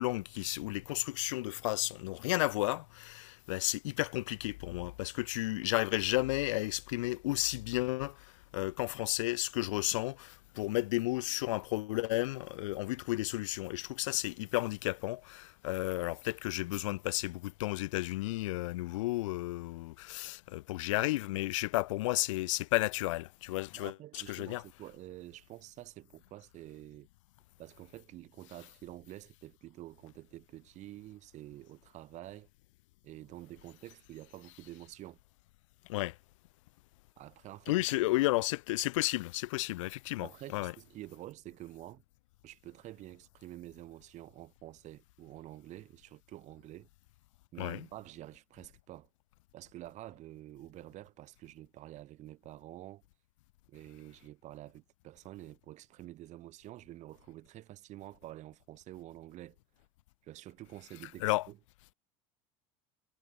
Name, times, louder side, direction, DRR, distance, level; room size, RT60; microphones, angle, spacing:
voice 1, 0.0-24.6 35.9-36.2 37.7-40.7 47.6-47.8 61.2-61.5, left 19 dB, 85° left, 0.8 m, -33 dB
voice 2, 23.7-27.1 27.6-32.5 33.0-35.2 37.2-37.8 38.0-38.1 40.2-42.0 42.4-46.9 47.5-49.1 49.5-53.0 53.7-59.6 60.2-61.6, right 15 dB, 50° right, 0.9 m, -49 dB
supercardioid pair, 105°, 16 cm